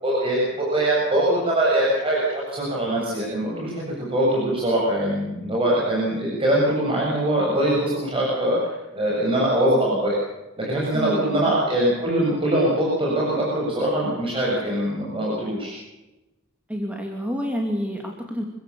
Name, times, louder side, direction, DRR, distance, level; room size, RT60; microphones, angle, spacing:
voice 1, 0.0-10.2 10.6-15.7, right 1 dB, 25° right, -4 dB, 7.4 m, -22 dB
voice 2, 10.9-11.5 16.7-18.4, equal, 5° right, 1 dB, 2.8 m, -28 dB
27.0 x 15.0 x 6.9 m, 1.0 s
head